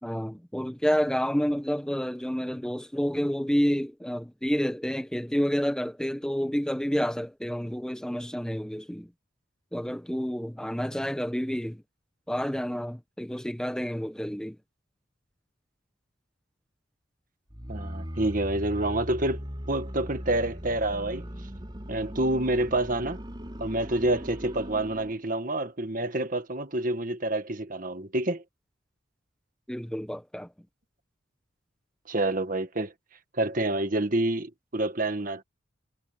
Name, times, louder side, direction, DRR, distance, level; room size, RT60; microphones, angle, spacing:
voice 1, 0.0-9.1 9.7-11.8 12.3-14.6 29.7-30.5, equal, 5° left, 0.9 m, -29 dB
sound 1, 17.5-25.2, equal, 25° right, 4.6 m, -38 dB
voice 2, 17.7-21.2 21.9-23.2 23.6-28.4 32.1-32.9 33.4-35.4, right 1 dB, 40° right, 1.5 m, -28 dB
head